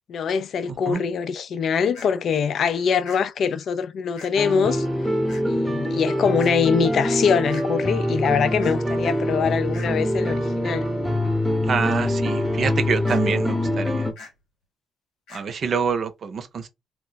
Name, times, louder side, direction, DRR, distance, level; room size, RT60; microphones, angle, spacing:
voice 1, 0.1-4.9 5.5-10.9, left 6 dB, 60° left, 0.4 m, -23 dB
voice 2, 0.7-1.0 11.7-14.1 15.3-16.7, right 6 dB, 50° right, 0.6 m, -26 dB
sound 1, 0.9-1.0 1.9-2.1 3.1-3.2 4.2-4.3 5.3-5.4 6.4-6.5 7.5-7.7 8.6-8.8 9.7-9.9 13.1-13.2 14.2-14.3 15.3-15.4, left 3 dB, 90° left, 1.3 m, -42 dB
sound 2, 4.4-14.1, left 1 dB, 5° left, 0.8 m, -24 dB
2.3 x 2.2 x 3.9 m
cardioid pair, 90°, 0 cm